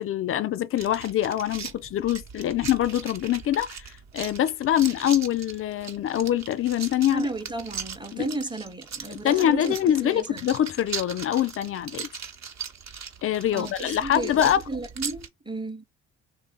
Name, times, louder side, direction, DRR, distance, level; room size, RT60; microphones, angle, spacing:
voice 1, 0.0-3.9 4.1-7.3 8.1-8.3 9.1-12.1 13.2-14.6, left 11 dB, 35° left, 0.4 m, -24 dB
sound 1, 0.8-15.3, right 7 dB, 45° right, 0.9 m, -39 dB
voice 2, 7.1-10.5 13.5-14.4 14.7-15.8, right 2 dB, 10° right, 0.8 m, -33 dB
3.2 x 2.4 x 3.8 m
hypercardioid pair, 50°, 39 cm